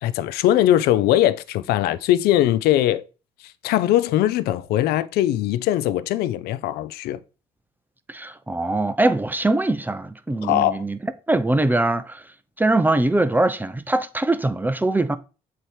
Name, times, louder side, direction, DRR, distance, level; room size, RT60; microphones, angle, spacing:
voice 1, 0.0-3.0 3.6-7.2 10.4-10.8, left 13 dB, 75° left, 0.5 m, -20 dB
voice 2, 8.1-12.2 12.6-15.2, right 2 dB, 10° right, 0.6 m, -22 dB
7.8 x 3.0 x 4.8 m
supercardioid pair, 65°, 16 cm